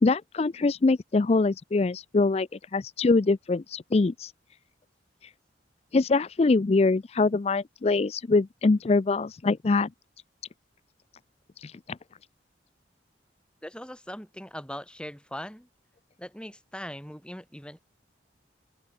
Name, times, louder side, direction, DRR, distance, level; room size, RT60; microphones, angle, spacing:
voice 1, 0.0-4.3 5.9-9.9 11.6-12.0, left 3 dB, 35° left, 0.4 m, -24 dB
voice 2, 13.6-15.7 16.2-17.8, equal, 5° left, 5.5 m, -40 dB
open air
head